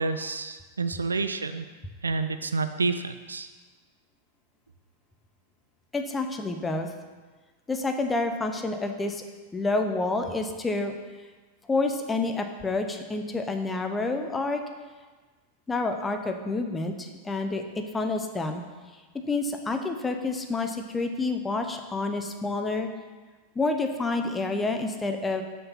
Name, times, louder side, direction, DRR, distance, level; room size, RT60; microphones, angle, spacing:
voice 1, 0.0-1.7 2.0-3.5, right 3 dB, 75° right, 10 dB, 0.3 m, -29 dB
voice 2, 5.9-6.9 7.7-9.2 9.5-10.9 11.7-14.6 15.7-18.6 19.1-22.9 23.5-25.4, left 3 dB, 15° left, 5 dB, 0.7 m, -28 dB
6.4 x 4.6 x 5.6 m, 1.4 s
figure-of-eight pair, 90°, 0 cm